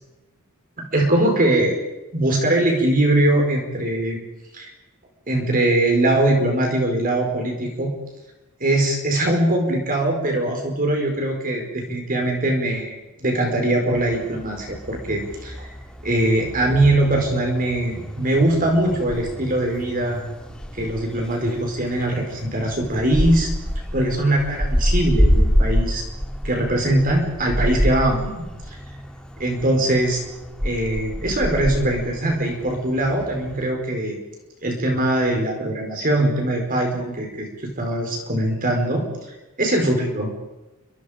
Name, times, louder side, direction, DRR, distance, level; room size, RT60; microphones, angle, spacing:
voice 1, 0.8-1.8 2.1-4.2 4.5-4.7 5.3-7.9 8.6-15.7 16.0-20.2 20.7-23.5 23.9-26.0 26.4-28.3 28.7-28.8 29.4-30.2 30.6-34.2 34.6-39.0 39.6-40.3, right 1 dB, 40° right, 2 dB, 4.7 m, -21 dB
sound 1, 13.9-33.7, equal, 5° left, 2.6 m, -27 dB
29.5 x 25.5 x 5.1 m, 1.0 s
head